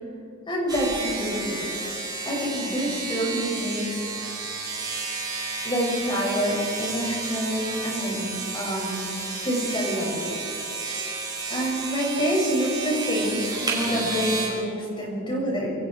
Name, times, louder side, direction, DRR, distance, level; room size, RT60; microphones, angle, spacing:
voice 1, 0.5-1.7 2.2-4.4 5.6-8.3 8.5-9.1 9.4-10.4 11.5-15.7, equal, 25° left, -2 dB, 6.6 m, -27 dB
sound 1, 0.7-14.5, right 4 dB, 20° right, 6.1 m, -32 dB
27.5 x 25.5 x 4.7 m, 2.5 s
head